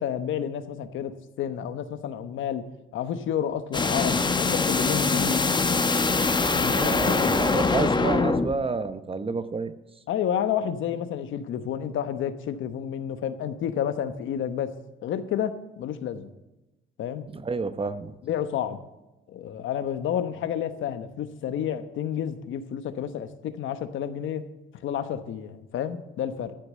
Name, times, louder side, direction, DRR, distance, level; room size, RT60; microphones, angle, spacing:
voice 1, 0.0-2.6 2.9-5.4 6.5-7.3 10.1-14.7 15.0-16.3 17.0-17.2 18.2-18.8 19.3-24.4 24.8-26.5, left 9 dB, 80° left, 11 dB, 1.0 m, -30 dB
sound 1, 3.7-8.5, left 3 dB, 20° left, 0.9 m, -23 dB
voice 2, 6.7-9.7 17.3-18.1, right 4 dB, 30° right, 12 dB, 0.9 m, -29 dB
13.5 x 6.7 x 7.5 m, 1.0 s
cardioid pair, 90°, 20 cm